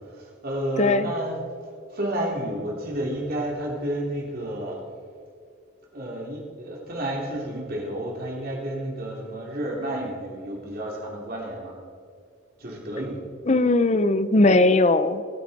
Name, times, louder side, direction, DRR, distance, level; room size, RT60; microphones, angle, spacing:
voice 1, 0.2-1.4 1.9-4.8 5.9-11.7 12.6-13.2, right 1 dB, 45° right, -2 dB, 2.9 m, -31 dB
voice 2, 0.8-1.1 13.5-15.2, left 2 dB, 35° left, 13 dB, 0.5 m, -19 dB
25.5 x 8.8 x 4.2 m, 2.2 s
head